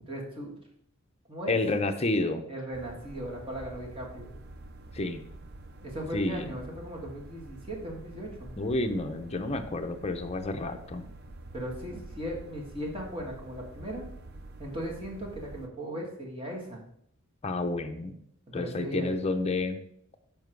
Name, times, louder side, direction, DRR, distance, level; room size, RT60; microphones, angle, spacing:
voice 1, 0.1-0.5 1.3-1.6 2.5-4.3 5.8-8.5 11.5-14.1 14.6-16.8 18.5-19.1, equal, 25° right, -3 dB, 1.9 m, -37 dB
voice 2, 1.5-2.4 4.9-5.2 6.1-6.4 8.6-11.0 17.4-18.1 18.5-19.8, left 2 dB, 30° left, 6 dB, 0.6 m, -30 dB
sound 1, 2.7-15.7, right 2 dB, 45° right, 0.5 m, -47 dB
7.2 x 5.5 x 4.6 m, 0.71 s
head